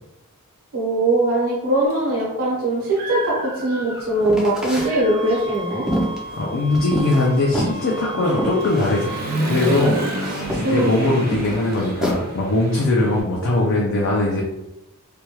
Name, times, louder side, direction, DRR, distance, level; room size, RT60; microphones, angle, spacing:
voice 1, 0.7-5.8 10.6-11.0, right 1 dB, 70° right, -5 dB, 1.0 m, -21 dB
Human voice / Motorcycle, 1.9-2.0 2.5-4.3 4.6-13.2, right 1 dB, 45° right, 0.8 m, -30 dB
sound 1, 4.2-4.9 5.4-7.3 7.5-7.8 8.4-9.0 9.3-9.4 9.7-10.7 11.3-12.2, equal, ahead, 0.5 m, -26 dB
sound 2, 4.8-9.3, right 3 dB, 25° left, 0.8 m, -35 dB
voice 2, 6.3-9.1 9.4-9.9 10.5-14.4, left 2 dB, 55° left, -3 dB, 0.5 m, -20 dB
3.3 x 2.2 x 2.9 m, 0.92 s
head